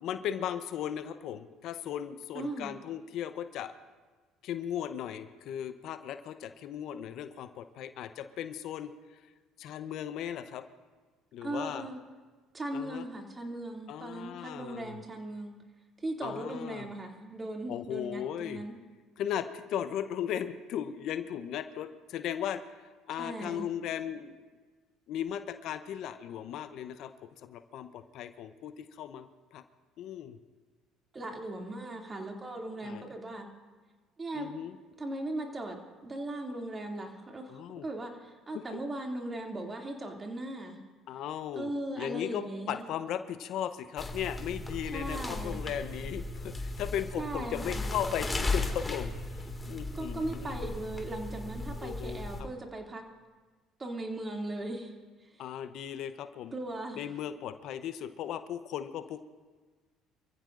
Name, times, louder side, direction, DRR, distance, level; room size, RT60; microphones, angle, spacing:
voice 1, 0.0-3.7 4.4-9.2 9.6-10.6 11.3-11.9 12.7-13.0 13.9-15.0 16.2-16.9 17.7-18.6 19.2-24.4 25.1-29.6 30.0-30.4 32.8-33.1 34.3-34.8 37.5-37.9 41.1-41.7 42.0-50.6 51.8-52.5 55.4-56.6 57.0-59.2, left 10 dB, 65° left, 10 dB, 0.8 m, -37 dB
voice 2, 2.3-2.7 11.4-12.0 12.5-15.5 16.0-18.7 23.2-23.6 31.1-33.5 34.2-34.5 35.0-35.8 36.0-40.8 41.5-42.9 44.9-45.6 47.2-47.9 49.9-53.0 53.8-54.9 55.2-55.4 56.5-57.0, right 1 dB, 30° right, 1 dB, 2.6 m, -38 dB
sound 1, 44.0-52.4, left 2 dB, 20° left, 2.1 m, -36 dB
27.0 x 15.0 x 2.6 m, 1.4 s
hypercardioid pair, 65°, 0 cm